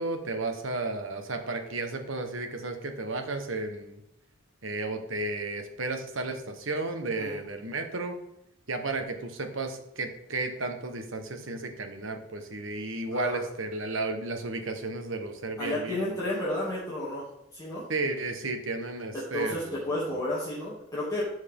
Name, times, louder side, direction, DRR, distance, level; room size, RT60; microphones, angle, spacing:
voice 1, 0.0-4.0 4.6-8.2 8.7-16.0 17.9-20.0, right 2 dB, 75° right, 6 dB, 1.3 m, -33 dB
voice 2, 13.1-13.4 15.6-17.9 19.1-21.2, left 1 dB, 20° left, -8 dB, 2.5 m, -32 dB
11.5 x 6.3 x 3.7 m, 0.82 s
head